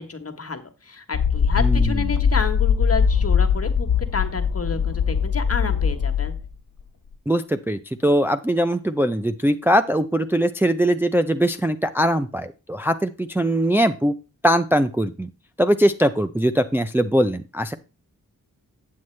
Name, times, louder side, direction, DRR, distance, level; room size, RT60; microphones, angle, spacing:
voice 1, 0.0-3.9 4.1-6.3, left 5 dB, 45° left, 7 dB, 1.2 m, -30 dB
The Force from Star Wars (Choke Push Pull...), 1.1-6.5, left 6 dB, 80° left, 0.8 m, -21 dB
voice 2, 1.6-1.9 7.3-14.2 14.4-15.3 15.6-17.7, equal, 5° right, 8 dB, 0.5 m, -21 dB
8.4 x 7.8 x 3.2 m, 0.32 s
cardioid pair, 55°, 34 cm